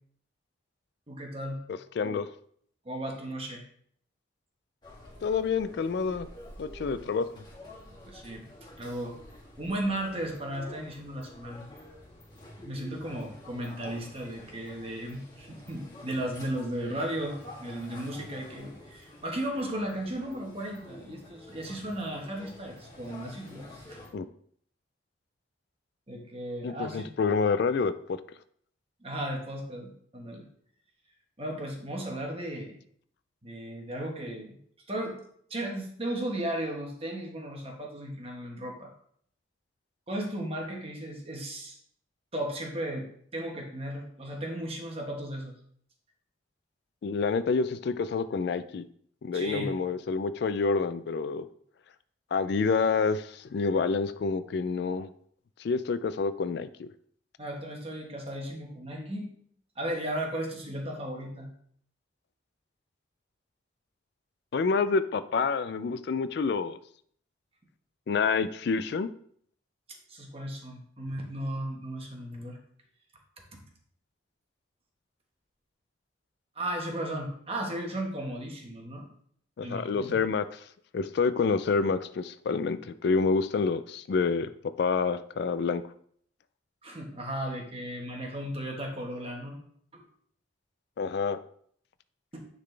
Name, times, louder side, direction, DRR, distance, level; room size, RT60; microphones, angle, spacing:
voice 1, 1.1-1.6 2.0-2.2 2.8-3.6 8.0-8.4 8.8-9.2 9.6-11.7 12.6-24.0 26.1-27.1 29.0-30.5 31.4-32.8 33.4-34.6 34.9-35.2 35.5-38.9 40.1-41.8 42.3-45.5 49.3-49.7 57.4-59.3 59.8-61.5 69.9-72.6 73.5-73.6 76.5-79.1 79.6-80.2 86.8-89.6 89.9-90.0 92.3-92.5, right 1 dB, 30° right, 1 dB, 1.3 m, -35 dB
voice 2, 2.0-2.3 5.2-6.3 6.6-7.3 24.1-24.3 26.6-28.2 47.0-48.8 49.2-51.5 52.3-55.1 55.6-56.9 64.5-66.8 68.1-69.1 79.6-80.4 80.9-84.5 84.8-85.8 91.0-91.4, left 4 dB, 60° left, 13 dB, 0.3 m, -28 dB
sound 1, 4.8-24.1, left 1 dB, 25° left, 2.4 m, -49 dB
9.6 x 4.0 x 3.3 m, 0.63 s
head